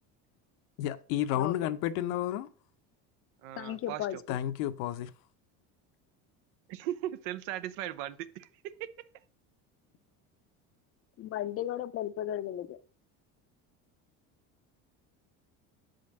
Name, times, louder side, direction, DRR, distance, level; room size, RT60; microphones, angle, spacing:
voice 1, 0.8-2.5 4.3-5.1, left 12 dB, 75° left, 0.8 m, -31 dB
voice 2, 1.3-1.7 3.6-4.4 11.2-12.8, left 12 dB, 40° left, 0.5 m, -35 dB
voice 3, 3.4-4.2 6.7-8.9, right 13 dB, 85° right, 0.8 m, -38 dB
7.1 x 5.2 x 5.2 m
cardioid pair, 125°, 37 cm